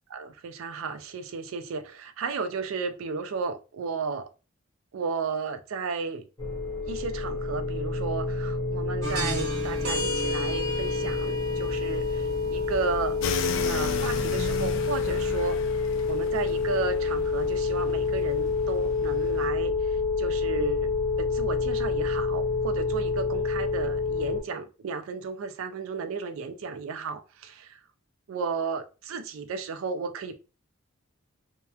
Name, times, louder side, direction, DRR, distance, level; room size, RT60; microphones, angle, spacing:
voice 1, 0.1-4.3 4.9-6.3 6.9-13.2 13.7-15.6 16.1-20.9 21.2-27.8 28.3-30.3, right 4 dB, 80° right, 0.4 m, -33 dB
sound 1, 6.4-24.4, left 4 dB, 15° left, 0.7 m, -28 dB
sound 2, 9.0-15.3, equal, 50° right, 1.2 m, -35 dB
sound 3, 13.2-19.5, left 5 dB, 65° left, 0.3 m, -35 dB
2.8 x 2.1 x 2.3 m
head